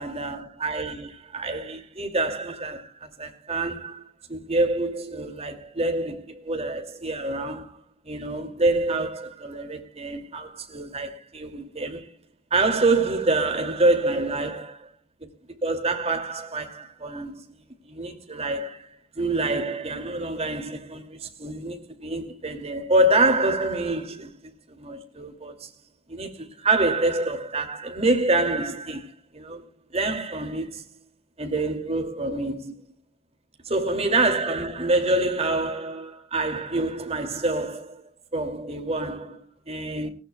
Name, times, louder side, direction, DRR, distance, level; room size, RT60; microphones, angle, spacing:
voice 1, 0.0-12.1 12.5-14.9 15.2-17.4 17.8-24.3 24.7-25.7 26.1-29.6 29.9-30.8 31.4-32.8 33.6-38.0 38.3-40.1, right 2 dB, 30° right, 2.4 m, -26 dB
18.5 x 18.5 x 2.2 m
head